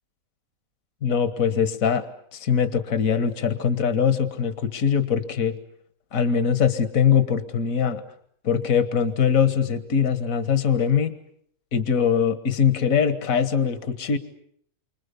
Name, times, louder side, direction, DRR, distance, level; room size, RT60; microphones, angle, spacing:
voice 1, 1.0-5.6 6.1-8.0 8.4-11.2 11.7-14.2, left 7 dB, 70° left, 11 dB, 1.8 m, -22 dB
29.0 x 25.0 x 6.9 m, 0.66 s
omnidirectional pair, 1.5 m